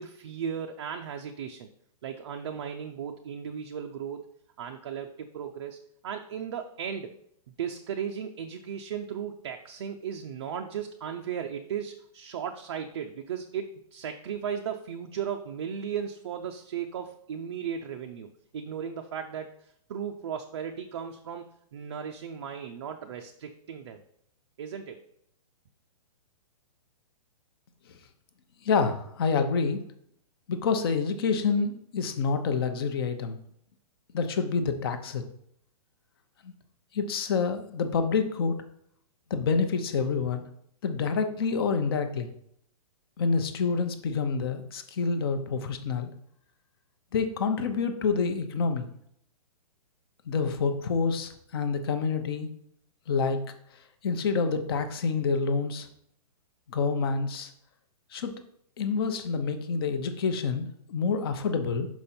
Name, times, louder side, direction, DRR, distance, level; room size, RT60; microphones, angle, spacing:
voice 1, 0.0-1.7 2.0-4.3 4.6-7.1 7.5-24.0 24.6-25.0, right 8 dB, 40° right, 4 dB, 0.5 m, -36 dB
voice 2, 28.6-29.8 30.5-33.4 34.1-35.2 36.4-36.5 36.9-38.6 39.3-40.4 40.8-42.3 43.2-46.1 47.1-48.9 50.3-52.5 53.1-53.4 54.0-55.9 56.7-57.5 58.1-58.3 58.8-61.9, left 5 dB, 35° left, 8 dB, 0.7 m, -27 dB
6.0 x 5.2 x 4.3 m, 0.69 s
hypercardioid pair, 170°, 20 cm